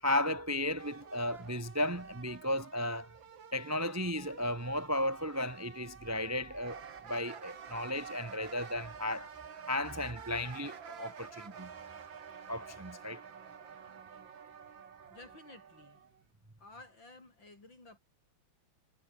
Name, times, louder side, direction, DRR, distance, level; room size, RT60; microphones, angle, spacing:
voice 1, 0.0-3.1 3.5-6.8 7.1-9.3 9.7-11.7 12.5-13.2, left 1 dB, 20° right, 0.4 m, -34 dB
sound 1, 0.8-16.2, right 7 dB, 70° right, 2.7 m, -50 dB
voice 2, 15.1-16.0 16.6-18.0, left 2 dB, 65° left, 7.9 m, -54 dB
omnidirectional pair, 2.2 m